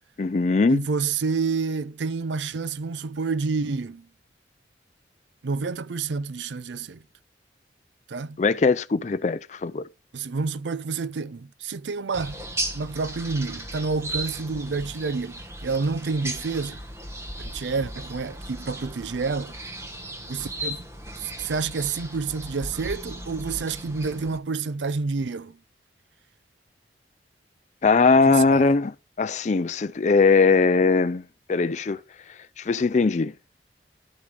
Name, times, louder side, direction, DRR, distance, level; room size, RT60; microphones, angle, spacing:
voice 1, 0.2-0.9 8.4-9.9 27.8-28.9 29.2-31.2 31.5-32.0 32.6-33.3, left 4 dB, 40° left, 0.4 m, -20 dB
voice 2, 0.7-4.1 5.4-7.0 8.1-8.4 10.1-12.4 12.7-16.8 17.4-19.5 20.3-20.8 21.2-25.6 28.3-28.6, right 4 dB, 85° right, 0.5 m, -29 dB
sound 1, 12.1-24.4, right 1 dB, 15° right, 1.4 m, -36 dB
12.0 x 8.4 x 3.3 m
head